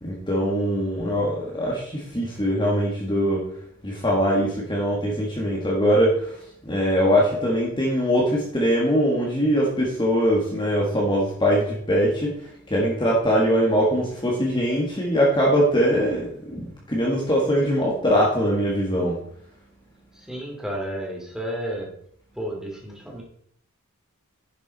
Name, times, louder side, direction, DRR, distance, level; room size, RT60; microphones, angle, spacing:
voice 1, 0.0-3.4 3.8-6.4 6.6-12.3 12.7-19.2, equal, 20° left, -3 dB, 1.8 m, -22 dB
voice 2, 20.2-21.9 22.4-23.2, right 1 dB, ahead, -1 dB, 2.6 m, -32 dB
10.5 x 7.2 x 4.1 m, 0.65 s
head